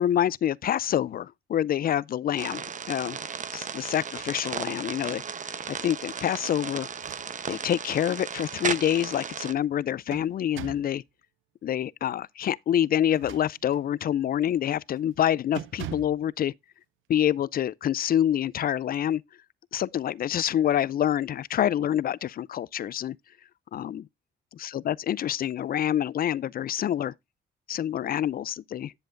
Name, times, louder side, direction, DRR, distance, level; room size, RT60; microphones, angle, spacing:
voice 1, 0.0-3.2 3.5-5.2 5.7-6.9 7.5-11.0 11.6-16.5 17.1-19.2 19.7-23.2 23.7-24.1 24.6-27.1 27.7-28.9, left 10 dB, 50° left, 0.4 m, -27 dB
sound 1, 2.4-9.5, right 6 dB, 40° right, 0.9 m, -35 dB
sound 2, 6.9-7.6 8.1-8.2 9.6-11.0 13.0-13.9 14.4-14.6 15.0-15.2 15.5-16.2, right 10 dB, 80° right, 0.7 m, -42 dB
10.5 x 7.7 x 2.5 m
cardioid pair, 90°, 20 cm